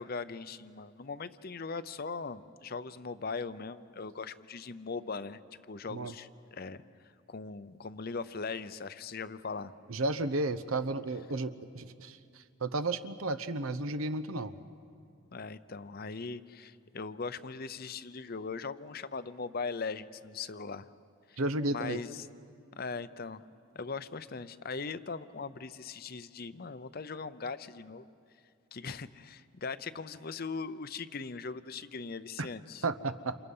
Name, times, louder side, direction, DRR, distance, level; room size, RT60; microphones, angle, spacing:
voice 1, 0.0-5.4 5.7-6.8 7.3-9.7 15.3-20.9 21.3-21.4 21.7-22.3 22.8-23.4 23.7-28.0 28.7-32.8, left 4 dB, 45° left, 13 dB, 0.7 m, -40 dB
voice 2, 9.9-12.2 12.6-14.5 21.4-22.0 32.8-33.4, right 2 dB, 85° right, 11 dB, 0.9 m, -33 dB
29.5 x 28.0 x 5.5 m, 2.4 s
head